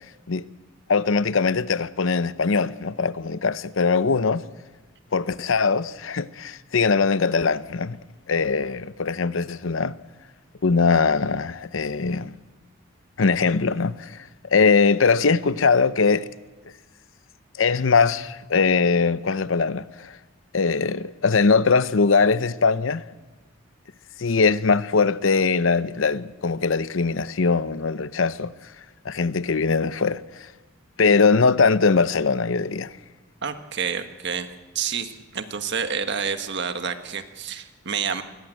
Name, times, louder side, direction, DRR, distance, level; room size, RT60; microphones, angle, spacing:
voice 1, 0.9-4.4 5.1-8.0 8.3-9.9 10.6-12.4 13.2-16.3 17.6-20.2 20.5-23.0 24.2-28.5 29.0-30.5 31.0-32.9, left 4 dB, 70° left, 0.7 m, -21 dB
voice 2, 33.4-34.5 34.7-38.2, right 6 dB, 55° right, 1.5 m, -29 dB
21.0 x 18.5 x 9.0 m
head